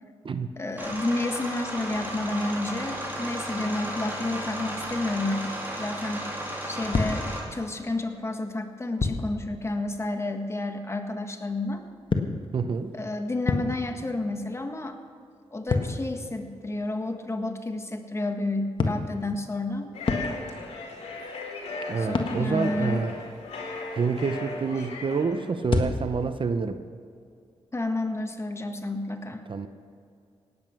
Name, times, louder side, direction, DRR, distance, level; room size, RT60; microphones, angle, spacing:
voice 1, 0.5-6.2 6.7-11.8 12.9-15.0 15.5-19.9 22.0-23.0 27.7-29.4, left 2 dB, 25° left, 5 dB, 1.6 m, -30 dB
big motor, 0.8-7.4, right 1 dB, 20° right, 3.9 m, -34 dB
sound 1, 6.9-7.9 9.0-9.4 11.5-14.2 14.5-17.2 18.8-20.7 21.1-21.5 22.1-22.5 25.6-26.3, left 3 dB, 50° left, 1.5 m, -30 dB
voice 2, 12.5-12.9 21.9-23.1 24.0-26.8 29.5-29.7, right 5 dB, 50° right, 10 dB, 0.8 m, -28 dB
sound 2, 19.9-25.5, left 3 dB, 80° left, 2.3 m, -36 dB
18.0 x 8.5 x 6.0 m, 2.3 s
cardioid pair, 60°, 11 cm